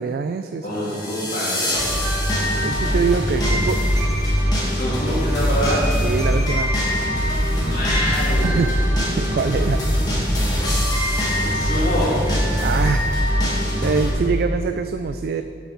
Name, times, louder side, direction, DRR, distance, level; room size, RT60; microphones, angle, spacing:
voice 1, 0.0-0.7 1.2-1.3 2.4-3.8 6.0-6.8 8.4-8.8 9.2-9.8 10.8-10.9 12.6-13.5 13.8-15.4, right 5 dB, 60° right, 8 dB, 0.3 m, -24 dB
voice 2, 0.6-2.0 4.7-5.9 7.5-8.8 11.3-12.1 14.0-14.1, equal, 50° left, -10 dB, 2.1 m, -26 dB
sound 1, 0.8-14.1, equal, 25° left, 2.2 m, -21 dB
8.0 x 6.0 x 6.7 m, 2.4 s
head